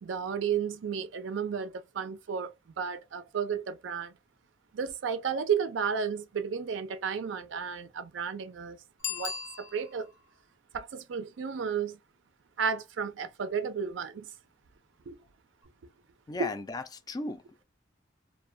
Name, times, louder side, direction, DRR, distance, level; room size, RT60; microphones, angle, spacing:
voice 1, 0.0-4.1 4.7-8.8 9.1-10.1 10.7-12.0 12.6-14.3 15.1-15.2 16.4-16.5, right 6 dB, 80° right, 0.4 m, -33 dB
Bicycle bell, 9.0-10.2 15.6-15.7, left 7 dB, 80° left, 0.7 m, -37 dB
voice 2, 16.3-17.6, left 2 dB, 20° left, 0.3 m, -36 dB
2.3 x 2.1 x 2.6 m
head